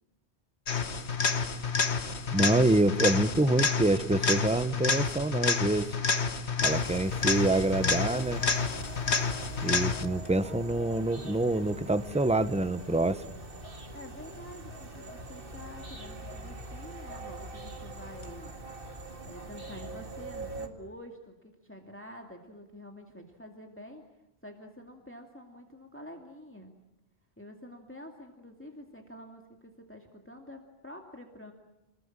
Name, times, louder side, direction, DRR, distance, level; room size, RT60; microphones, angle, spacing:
sound 1, 0.7-10.3 18.2-18.3, left 5 dB, 80° left, 1.7 m, -29 dB
voice 1, 2.3-6.0 6.6-8.4 9.6-13.3, right 2 dB, 5° right, 12 dB, 0.9 m, -26 dB
sound 2, 6.6-20.7, right 1 dB, 55° right, 2.3 m, -43 dB
voice 2, 13.9-18.5 19.2-24.0 24.4-26.7 27.4-31.5, left 1 dB, 10° left, 2 dB, 2.4 m, -48 dB
29.0 x 21.0 x 8.9 m, 0.92 s
omnidirectional pair, 1.1 m